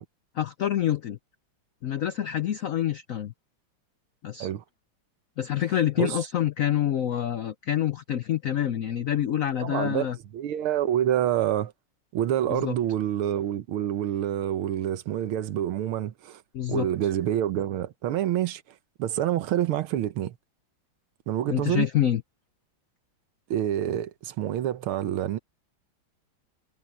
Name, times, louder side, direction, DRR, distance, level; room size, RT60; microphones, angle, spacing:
voice 1, 0.4-1.2 1.8-3.3 4.2-4.5 5.4-10.2 12.5-12.8 16.5-16.9 21.5-22.2, left 11 dB, 90° left, 0.7 m, -27 dB
voice 2, 9.6-10.1 10.3-11.7 12.1-16.4 16.7-18.6 19.0-20.4 21.3-21.9 23.5-25.4, right 11 dB, 90° right, 1.8 m, -27 dB
omnidirectional pair, 2.3 m